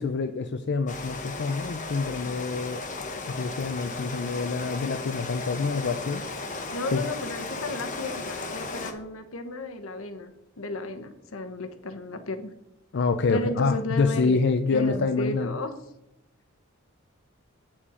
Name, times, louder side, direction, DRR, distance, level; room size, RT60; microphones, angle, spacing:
voice 1, 0.0-2.8 3.3-6.2 6.9-7.0 12.9-15.5, left 4 dB, 55° left, 7 dB, 0.5 m, -26 dB
Rain, 0.9-8.9, left 3 dB, 40° left, 1.1 m, -35 dB
voice 2, 6.7-12.5 13.3-14.4 14.7-15.7, left 2 dB, 75° left, 8 dB, 1.1 m, -33 dB
8.6 x 7.4 x 5.0 m, 0.83 s
head